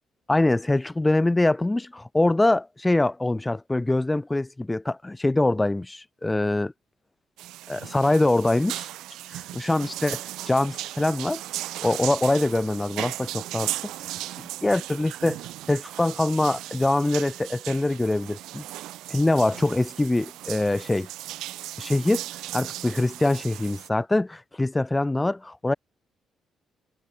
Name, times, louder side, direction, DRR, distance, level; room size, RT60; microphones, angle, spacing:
voice 1, 0.3-6.7 7.7-8.9 9.3-11.4 11.8-13.7 14.4-15.4 15.7-18.6 19.1-21.1 21.8-22.2 22.5-25.7, left 2 dB, 15° left, 0.6 m, -24 dB
sound 1, 7.4-23.9, right 15 dB, 90° right, 2.5 m, -37 dB
cardioid pair, 90°, 0 cm